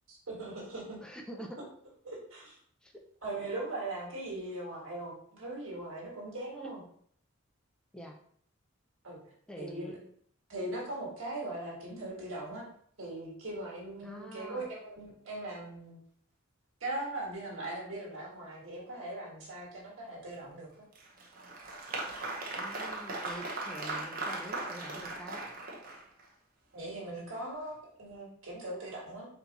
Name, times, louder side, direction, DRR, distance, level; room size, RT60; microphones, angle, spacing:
voice 1, 0.1-1.0 2.0-2.6 3.2-6.8 9.0-10.0 10.5-12.6 13.0-16.0 16.8-20.9 26.7-29.3, right 2 dB, 70° right, -3 dB, 1.7 m, -40 dB
voice 2, 1.0-1.6 2.8-2.9 6.6-6.7 7.9-8.2 9.5-10.0 14.0-14.6 22.5-25.4, right 1 dB, 5° left, 1 dB, 0.5 m, -45 dB
Applause, 20.9-26.2, right 2 dB, 45° right, 0.8 m, -38 dB
4.4 x 2.7 x 4.0 m, 0.63 s
head